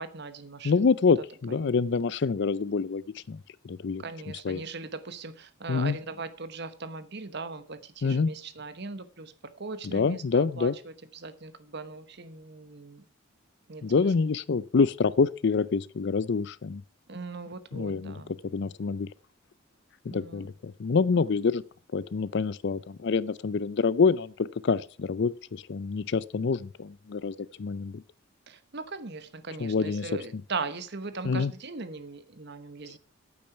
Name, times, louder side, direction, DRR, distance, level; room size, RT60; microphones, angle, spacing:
voice 1, 0.0-0.9 1.5-1.7 4.0-13.0 13.7-14.1 17.1-18.3 20.1-20.5 21.2-21.3 28.5-33.0, right 4 dB, 50° right, 1.0 m, -39 dB
voice 2, 0.6-3.0 3.3-3.4 3.6-4.0 4.4-4.6 5.7-6.0 8.0-8.3 9.8-10.8 13.8-16.8 17.7-19.1 20.1-21.6 21.9-28.0 29.6-30.1 31.2-31.5, left 5 dB, 55° left, 0.4 m, -26 dB
8.8 x 8.8 x 5.7 m
head